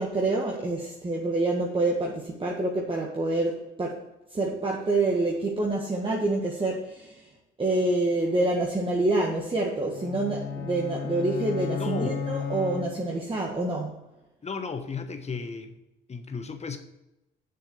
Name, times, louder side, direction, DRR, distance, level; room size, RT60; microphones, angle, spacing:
voice 1, 0.0-4.0 4.3-7.2 7.6-13.9, right 2 dB, 25° right, -2 dB, 1.7 m, -27 dB
sound 1, 9.9-13.4, left 7 dB, 85° left, 1.1 m, -34 dB
voice 2, 11.8-12.2 14.4-15.8 16.1-16.8, left 4 dB, 35° left, 7 dB, 1.3 m, -34 dB
7.2 x 6.8 x 7.0 m, 0.92 s
cardioid pair, 90°, 20 cm